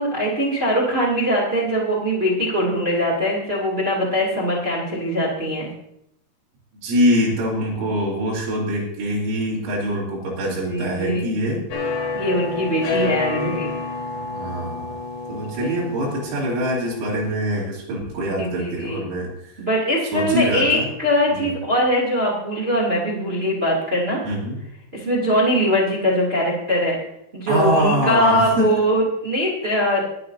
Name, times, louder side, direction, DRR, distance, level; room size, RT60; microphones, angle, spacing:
voice 1, 0.0-5.7 10.7-11.3 12.1-13.7 15.6-15.9 18.4-19.0 19.6-24.2 24.9-27.0 27.3-30.1, equal, 20° right, -4 dB, 1.6 m, -21 dB
voice 2, 6.8-11.6 14.1-14.9 15.3-19.3 20.1-20.9 21.4-21.5 24.3-24.6 27.5-28.7, equal, 90° right, -5 dB, 5.4 m, -24 dB
sound 1, 11.7-17.3, left 4 dB, 55° left, 2.6 m, -29 dB
22.5 x 8.5 x 2.7 m, 0.77 s
omnidirectional pair, 5.6 m